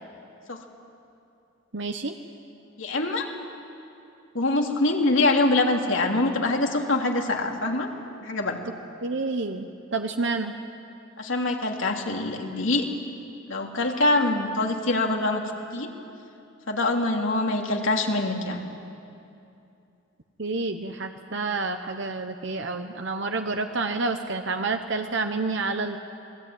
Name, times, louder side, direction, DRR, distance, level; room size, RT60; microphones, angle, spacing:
voice 1, 1.7-2.1 9.0-10.5 20.4-26.0, right 3 dB, 65° right, 6 dB, 1.1 m, -29 dB
voice 2, 2.8-3.3 4.3-7.9 8.2-8.6 11.2-12.8 13.5-15.4 15.7-15.9 16.7-18.6, left 2 dB, 75° left, 1 dB, 3.1 m, -24 dB
29.0 x 21.5 x 9.4 m, 2.7 s
head